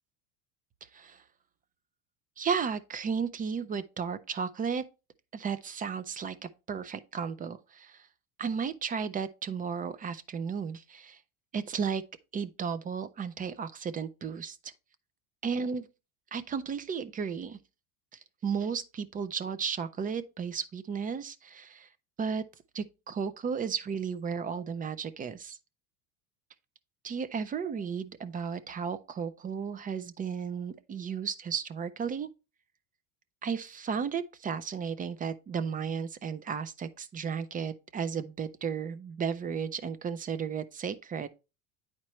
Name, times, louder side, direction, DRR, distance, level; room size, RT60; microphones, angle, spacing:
voice 1, 0.9-1.2 2.4-4.8 5.3-8.1 8.4-11.2 11.5-12.0 12.3-14.7 15.4-15.9 16.3-17.6 18.1-21.9 22.2-22.4 22.7-25.6 27.0-32.3 33.4-41.3, right 6 dB, 20° right, 0.4 m, -34 dB
9.6 x 4.4 x 3.0 m
supercardioid pair, 115°, 43 cm